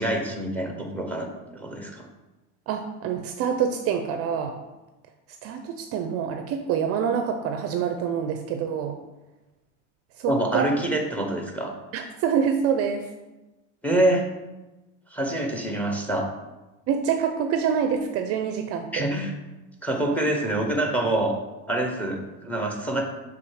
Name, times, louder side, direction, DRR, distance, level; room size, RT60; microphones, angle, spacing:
voice 1, 0.0-2.1 10.3-11.7 13.8-14.2 15.1-16.3 18.9-19.3 19.8-21.3 21.7-23.0, right 1 dB, 5° left, 3 dB, 0.6 m, -26 dB
voice 2, 2.7-4.6 5.4-9.0 10.2-10.6 11.9-13.1 16.9-19.0, right 7 dB, 40° right, 6 dB, 0.4 m, -26 dB
6.3 x 3.5 x 4.6 m, 1.1 s
cardioid pair, 150°, 37 cm